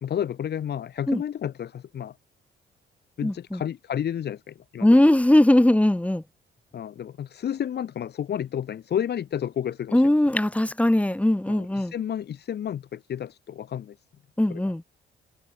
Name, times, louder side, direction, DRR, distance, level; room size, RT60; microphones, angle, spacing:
voice 1, 0.0-2.2 3.2-5.0 6.7-10.2 11.5-14.0 14.5-14.7, left 9 dB, 55° left, 1.4 m, -31 dB
voice 2, 3.2-3.6 4.8-6.2 9.9-11.9 14.4-14.8, left 1 dB, 5° left, 1.5 m, -20 dB
cardioid pair, 90°, 20 cm